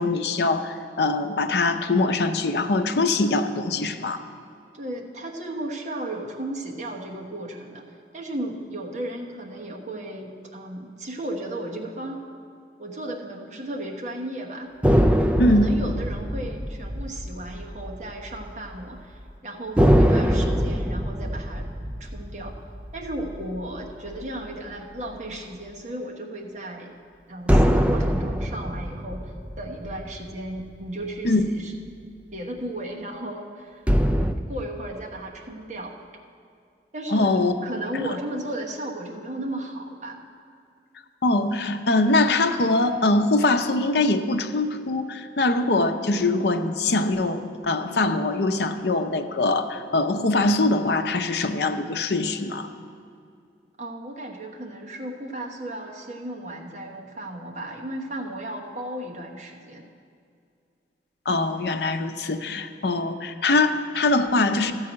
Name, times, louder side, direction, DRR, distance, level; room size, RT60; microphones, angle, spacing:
voice 1, 0.0-4.2 15.4-15.7 31.2-31.4 37.1-37.5 41.2-52.7 61.3-64.7, left 2 dB, 70° left, 7 dB, 0.6 m, -23 dB
voice 2, 4.7-12.2 12.8-14.7 15.5-21.7 22.0-22.6 22.9-26.9 27.3-31.7 32.3-33.8 34.5-36.0 36.9-40.2 53.8-59.8, right 1 dB, 40° right, 0 dB, 1.2 m, -35 dB
sound 1, 14.8-18.6 18.8-19.0 19.8-24.4 27.5-31.1 33.9-34.3, equal, 5° right, 0.3 m, -23 dB
13.0 x 4.7 x 8.7 m, 2.3 s
head